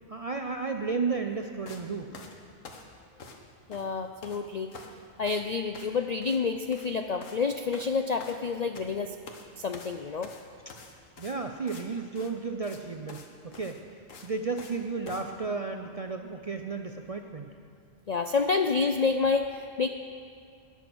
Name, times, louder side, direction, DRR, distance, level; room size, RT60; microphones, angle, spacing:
voice 1, 0.1-2.2 11.2-13.8 14.2-17.5, right 4 dB, 45° right, 5 dB, 0.4 m, -33 dB
sound 1, 1.7-1.8 2.1-3.4 3.7-4.4 4.7-5.0 5.3-5.4 5.7-6.0 6.2-6.4 6.7-6.9 7.2-7.4 7.7-8.9 9.3-9.5 9.7-11.8 12.1-12.3 12.6-12.8 13.1-13.3 13.5-14.8 15.1-15.2, left 4 dB, 85° left, 1.6 m, -47 dB
voice 2, 3.7-4.7 5.2-9.1 9.6-10.3 18.1-19.9, left 4 dB, 60° left, 6 dB, 0.4 m, -28 dB
20.5 x 7.1 x 6.1 m, 2.3 s
omnidirectional pair, 1.3 m